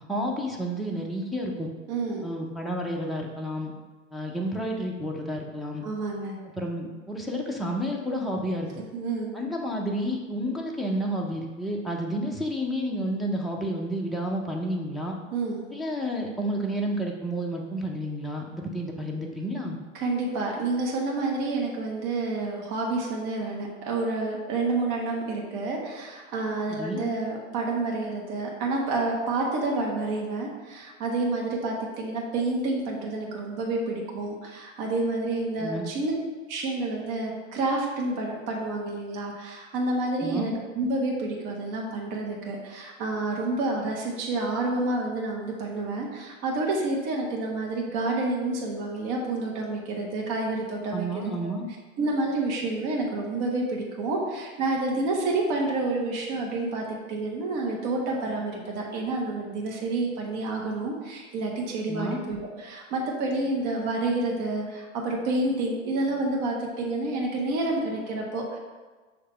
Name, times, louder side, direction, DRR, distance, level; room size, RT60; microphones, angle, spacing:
voice 1, 0.1-1.7 2.2-3.7 4.1-5.9 6.6-8.7 9.3-15.1 15.7-19.8 26.7-27.0 35.6-35.9 40.2-40.5 50.9-51.7 61.9-62.2, equal, ahead, -2 dB, 0.4 m, -30 dB
voice 2, 1.9-2.2 5.8-6.4 8.9-9.3 15.3-15.6 19.9-36.1 36.5-51.5 52.0-68.6, right 2 dB, 40° right, -1 dB, 1.3 m, -29 dB
6.5 x 2.8 x 5.4 m, 1.3 s
hypercardioid pair, 110°, 40 cm